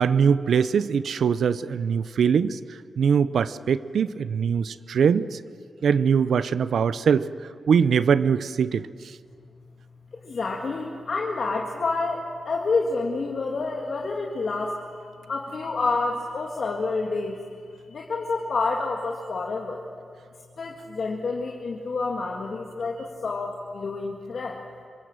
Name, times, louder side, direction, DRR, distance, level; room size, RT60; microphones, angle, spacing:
voice 1, 0.0-2.6 3.0-5.4 5.8-7.3 7.7-8.9, right 7 dB, 80° right, 15 dB, 0.6 m, -22 dB
voice 2, 10.2-14.8 15.3-17.4 17.9-19.8 20.6-24.6, left 3 dB, 65° left, 0 dB, 2.0 m, -28 dB
26.5 x 17.0 x 7.5 m, 2.2 s
cardioid pair, 60°, 0 cm